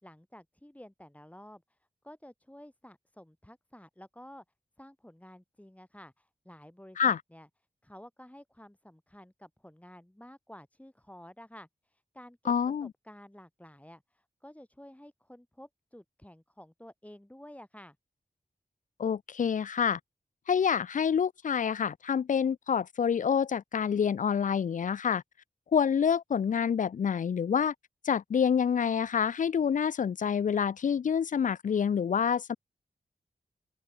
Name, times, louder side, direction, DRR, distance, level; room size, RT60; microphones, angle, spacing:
voice 1, 0.0-1.8 2.0-4.4 4.8-7.5 7.8-12.5 12.8-18.0, equal, 10° left, 3.4 m, -52 dB
voice 2, 12.5-12.9 19.0-20.0 20.5-25.2 25.7-27.7 28.0-32.6, left 7 dB, 55° left, 0.4 m, -27 dB
open air
cardioid pair, 50°, 16 cm